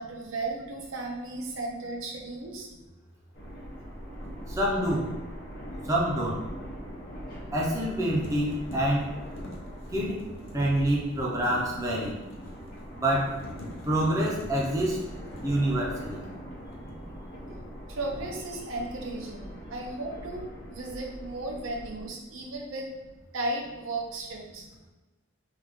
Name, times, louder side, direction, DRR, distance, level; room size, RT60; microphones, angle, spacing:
voice 1, 0.0-2.7 17.9-22.9 23.3-24.7, right 2 dB, 80° right, 0 dB, 0.6 m, -35 dB
sound 1, 3.3-22.1, equal, 45° left, 0.9 m, -42 dB
sound 2, 4.3-4.4 7.6-7.9 8.2-16.4 16.7-17.2, left 1 dB, 70° left, 0.6 m, -45 dB
voice 2, 4.5-5.0 5.9-6.4 7.5-9.1 9.9-10.2 10.5-12.1 13.0-13.3 13.9-15.0 15.4-16.2, right 1 dB, 15° right, -4 dB, 0.5 m, -26 dB
3.2 x 2.2 x 3.5 m, 1.1 s
head